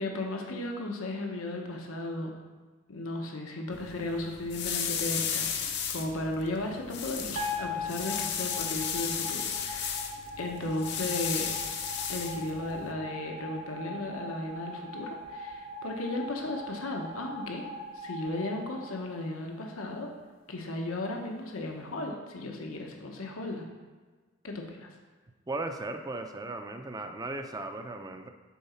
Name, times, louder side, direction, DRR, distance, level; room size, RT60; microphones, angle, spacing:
voice 1, 0.0-2.3 2.9-10.0 10.4-11.5 12.1-17.7 17.9-20.1 20.5-23.7 24.4-24.9, left 2 dB, 85° left, 1 dB, 1.0 m, -35 dB
sound 1, 3.7-12.9, left 7 dB, 55° left, 0.7 m, -34 dB
sound 2, 7.3-19.6, left 2 dB, 70° right, 2.2 m, -40 dB
voice 2, 25.5-28.3, right 2 dB, 20° right, 6 dB, 0.5 m, -36 dB
8.6 x 4.1 x 5.8 m, 1.4 s
head